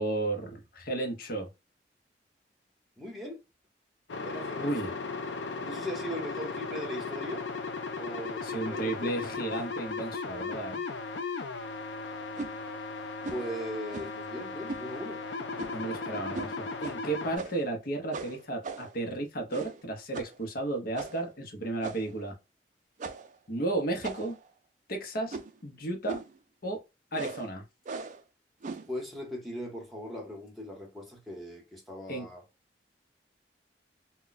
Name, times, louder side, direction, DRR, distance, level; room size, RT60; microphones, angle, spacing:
voice 1, 0.0-1.5 4.6-4.9 8.4-10.8 15.7-22.4 23.5-24.4 24.9-26.2 26.6-26.8 27.1-27.6 32.1-32.3, right 2 dB, 55° left, 0.8 m, -33 dB
voice 2, 3.0-3.4 4.2-4.9 5.6-7.5 8.0-9.2 13.3-15.2 15.8-16.0 28.9-32.4, equal, ahead, 0.9 m, -39 dB
sound 1, 4.1-17.4, left 4 dB, 85° left, 0.4 m, -37 dB
sound 2, 12.4-12.6 13.2-13.5 13.9-14.2 14.7-14.9 15.6-15.9 16.3-16.5 16.8-17.0 17.4-17.7 18.1-19.0 19.5-19.8 20.1-20.4 21.0-21.3 21.8-22.2 23.0-23.4 24.0-24.5 25.3-25.6 26.1-26.4 27.1-27.5 27.9-28.2 28.6-28.9, right 3 dB, 45° right, 0.4 m, -39 dB
2.2 x 2.2 x 3.8 m
head